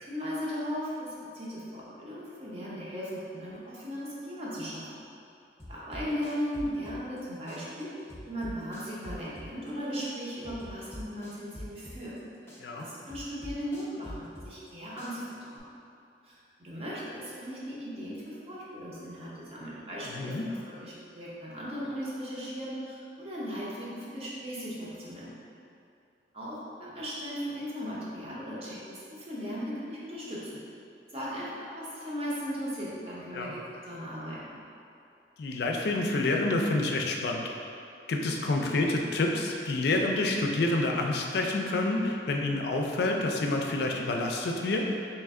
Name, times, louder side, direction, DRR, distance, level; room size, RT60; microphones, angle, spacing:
voice 1, 0.0-5.0 5.7-7.9 8.3-12.1 12.7-15.6 16.2-25.3 26.3-30.6 31.1-33.6 33.8-34.6, equal, 35° right, -7 dB, 0.8 m, -37 dB
sound 1, 5.6-7.2 7.5-9.7 10.0-12.2 12.5-14.7 15.0-15.6, left 1 dB, 15° left, 0.5 m, -43 dB
voice 2, 20.1-20.4 33.3-33.5 35.4-37.5 38.1-44.8, left 2 dB, 60° left, 1 dB, 0.4 m, -28 dB
3.2 x 3.2 x 3.6 m, 2.5 s
head